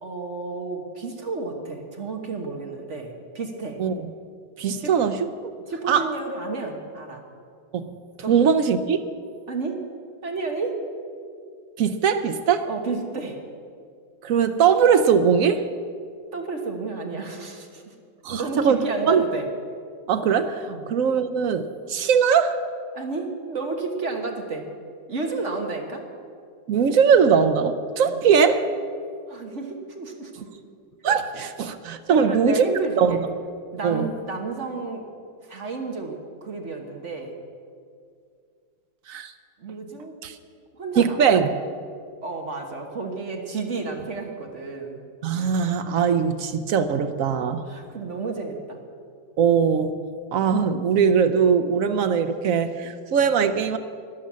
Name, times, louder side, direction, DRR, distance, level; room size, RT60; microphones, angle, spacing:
voice 1, 0.0-3.8 4.8-4.9 5.7-7.2 8.2-8.4 9.5-9.8 10.2-10.8 12.7-13.4 16.3-17.9 18.3-19.5 20.7-20.8 22.9-24.7 25.1-26.0 28.0-28.2 29.3-30.3 32.1-33.2 33.7-35.0 35.5-37.4 39.6-40.2 40.7-41.2 42.2-45.0 47.6-48.8, right 3 dB, 45° right, 3 dB, 1.4 m, -31 dB
voice 2, 3.8-4.1 4.6-5.2 5.9-6.1 7.7-7.9 8.3-9.0 11.8-12.7 14.2-15.6 18.2-19.2 20.1-22.6 26.7-28.6 31.0-32.6 33.0-33.2 33.8-34.1 39.1-39.3 40.2-40.4 41.0-41.5 45.2-47.6 49.4-50.0 50.3-53.8, right 7 dB, 70° right, 9 dB, 0.8 m, -20 dB
13.0 x 10.5 x 7.3 m, 2.3 s
omnidirectional pair, 2.1 m